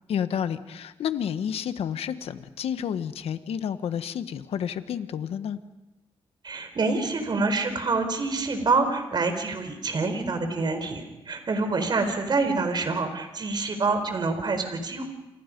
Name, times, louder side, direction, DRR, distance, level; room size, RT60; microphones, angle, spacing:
voice 1, 0.1-5.6, left 8 dB, 80° left, 10 dB, 1.4 m, -30 dB
voice 2, 6.4-15.1, right 3 dB, 45° right, 7 dB, 4.5 m, -26 dB
29.0 x 28.0 x 5.4 m, 0.98 s
cardioid pair, 90°, 10 cm